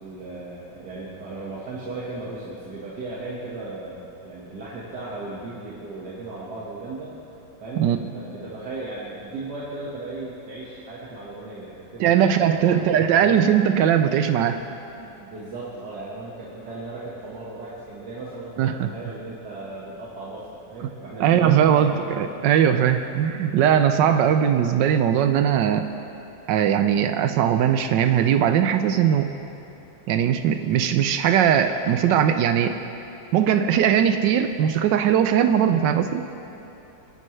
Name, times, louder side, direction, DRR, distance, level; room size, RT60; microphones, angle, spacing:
voice 1, 0.0-7.1 7.6-13.4 15.0-22.0, right 2 dB, 65° right, -7 dB, 2.2 m, -36 dB
voice 2, 12.0-14.6 18.6-18.9 20.8-20.9 21.2-25.9 26.5-29.3 30.1-32.8 33.3-36.2, right 9 dB, 85° right, 8 dB, 1.3 m, -20 dB
25.5 x 11.0 x 3.2 m, 2.9 s
omnidirectional pair, 1.9 m